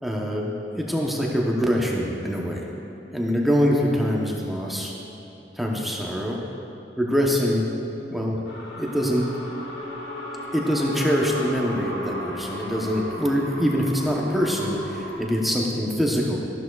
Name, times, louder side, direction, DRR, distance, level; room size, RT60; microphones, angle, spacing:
voice 1, 0.0-2.7 3.1-4.9 5.5-6.4 7.0-7.7 8.1-8.4 8.8-9.3 10.5-16.4, equal, ahead, -3 dB, 0.8 m, -24 dB
sound 1, 8.4-15.2, equal, 80° left, 1.8 m, -35 dB
14.0 x 11.0 x 2.3 m, 3.0 s
head